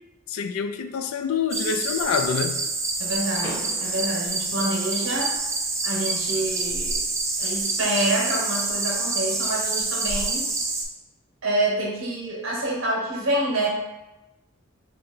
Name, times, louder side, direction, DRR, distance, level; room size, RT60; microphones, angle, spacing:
voice 1, 0.3-2.7, left 6 dB, 80° left, 0.3 m, -26 dB
sound 1, 1.5-10.9, right 3 dB, 15° right, 0.3 m, -27 dB
voice 2, 3.0-5.3 5.8-7.0 7.4-10.5 11.4-13.7, right 1 dB, 65° right, 0.9 m, -27 dB
Car / Door, 3.4-5.3, right 1 dB, 50° left, 1.5 m, -40 dB
2.8 x 2.7 x 4.3 m
head